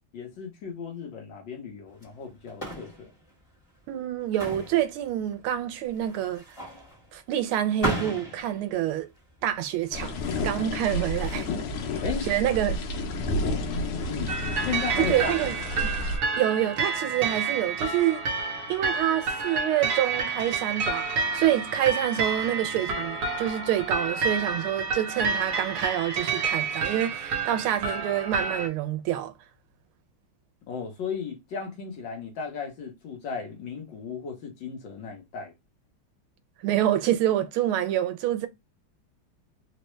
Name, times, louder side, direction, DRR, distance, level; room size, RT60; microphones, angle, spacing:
voice 1, 0.1-3.1 12.0-12.3 14.1-14.4 14.6-15.3 30.7-35.5, left 6 dB, 65° left, 1.6 m, -35 dB
sound 1, 1.9-14.9, right 1 dB, 20° left, 1.1 m, -39 dB
voice 2, 3.9-6.4 7.1-9.1 9.4-11.5 12.3-12.8 15.1-15.5 15.8-16.0 16.4-18.2 18.7-29.3 36.6-38.5, right 12 dB, 85° right, 1.5 m, -27 dB
sound 2, 9.9-16.2, left 2 dB, 90° left, 1.6 m, -30 dB
sound 3, 14.3-28.7, right 4 dB, 60° right, 1.1 m, -29 dB
3.9 x 2.2 x 3.0 m
omnidirectional pair, 2.3 m